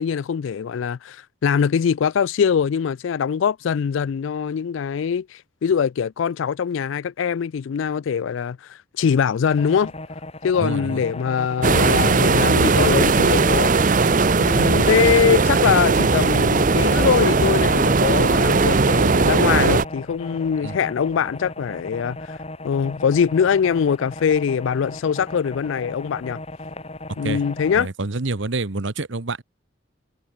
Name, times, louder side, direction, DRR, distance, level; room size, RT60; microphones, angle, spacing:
voice 1, 0.0-9.9 10.4-13.7 14.3-22.4 22.6-26.4 27.2-27.9, left 7 dB, 70° left, 0.4 m, -22 dB
sound 1, 9.5-27.8, left 2 dB, 30° left, 3.5 m, -36 dB
voice 2, 10.6-11.0 20.6-20.8 27.2-27.4 27.7-29.4, right 3 dB, 65° right, 1.1 m, -27 dB
sound 2, 11.6-19.9, right 4 dB, 40° right, 0.7 m, -18 dB
head